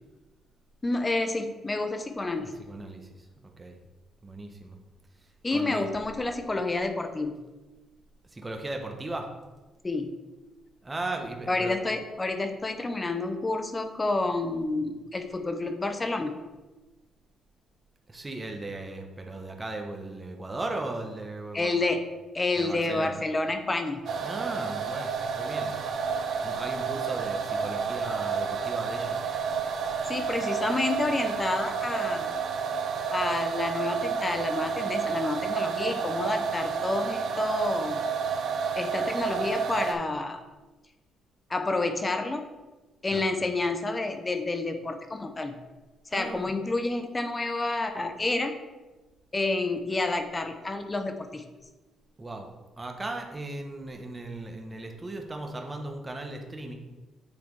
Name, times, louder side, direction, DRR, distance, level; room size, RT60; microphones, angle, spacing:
voice 1, 0.8-2.5 5.4-7.4 9.8-10.2 11.5-16.4 21.5-22.0 22.3-24.0 30.1-32.3 33.1-38.0 38.8-40.4 41.5-42.4 43.0-45.6 46.1-48.6 49.3-51.4, left 2 dB, 25° left, 7 dB, 0.7 m, -29 dB
voice 2, 2.3-3.3 3.6-3.8 4.2-4.8 5.5-5.9 8.3-9.3 10.8-11.7 18.1-21.9 22.6-23.2 24.2-25.8 26.4-29.3 43.1-43.3 46.1-46.5 52.2-52.5 52.8-56.7, right 2 dB, 20° right, 3 dB, 1.1 m, -37 dB
sound 1, 24.1-39.9, right 6 dB, 65° right, 0.8 m, -30 dB
8.7 x 3.4 x 4.6 m, 1.1 s
cardioid pair, 90°, 0 cm